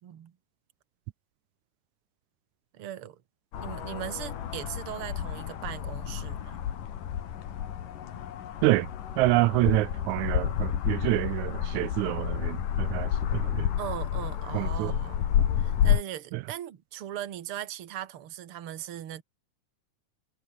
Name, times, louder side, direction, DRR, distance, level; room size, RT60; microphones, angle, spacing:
voice 1, 0.0-0.3 2.7-3.2 3.6-6.6 13.8-19.2, right 11 dB, 50° right, 2.1 m, -39 dB
sound 1, 3.5-16.0, left 10 dB, 80° left, 3.6 m, -30 dB
voice 2, 9.2-13.7 14.5-15.0 16.3-16.4, right 19 dB, 80° right, 1.8 m, -27 dB
omnidirectional pair, 3.7 m